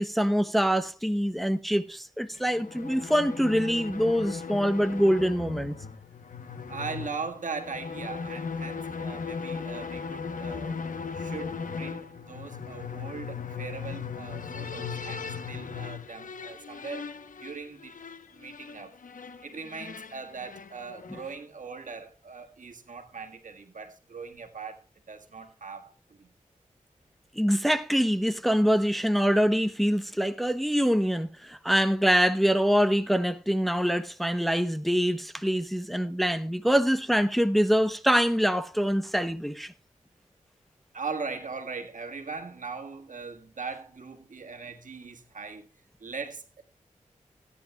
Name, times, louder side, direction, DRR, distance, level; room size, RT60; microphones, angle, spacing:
voice 1, 0.0-5.8 21.1-21.2 27.3-39.7, equal, ahead, 0.9 m, -25 dB
sound 1, 2.3-21.4, left 5 dB, 80° left, 0.9 m, -38 dB
voice 2, 6.7-10.8 11.1-17.1 17.4-18.0 18.3-19.0 19.4-26.3 40.9-45.7 46.0-46.6, right 4 dB, 75° right, 1.6 m, -40 dB
17.0 x 9.8 x 2.3 m
cardioid pair, 40°, 14 cm